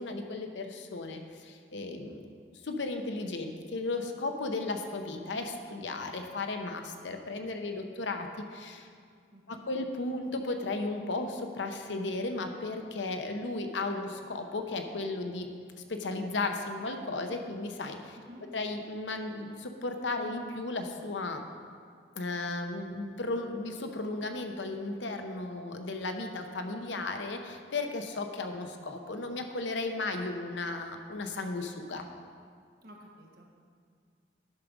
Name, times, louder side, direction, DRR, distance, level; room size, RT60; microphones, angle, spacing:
voice 1, 0.0-2.3 2.6-8.9 9.5-15.5 15.8-18.2 18.5-21.4 22.1-32.0, left 2 dB, 85° left, 5 dB, 0.8 m, -35 dB
voice 2, 9.3-9.7 18.2-18.4 32.8-33.5, equal, 55° right, -1 dB, 1.4 m, -52 dB
10.5 x 6.0 x 5.2 m, 2.2 s
head